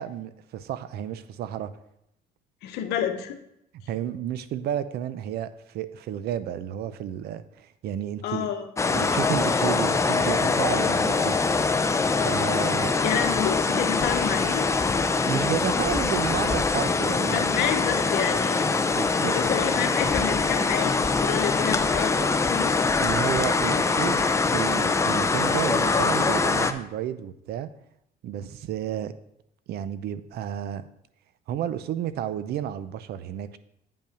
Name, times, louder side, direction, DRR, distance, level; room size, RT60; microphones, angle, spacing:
voice 1, 0.0-1.7 3.9-8.5 8.9-11.4 12.1-12.9 15.2-17.7 19.0-19.4 23.0-27.7 28.2-29.1 29.7-30.9 31.5-33.6, right 10 dB, 70° right, 14 dB, 0.6 m, -31 dB
voice 2, 2.6-3.4 8.2-8.7 12.2-12.7 13.0-15.0 17.3-18.7 19.2-22.8, left 9 dB, 85° left, 7 dB, 1.0 m, -30 dB
sound 1, 8.8-26.7, left 4 dB, 15° left, 0.5 m, -23 dB
8.9 x 5.5 x 5.1 m, 0.77 s
cardioid pair, 110°, 17 cm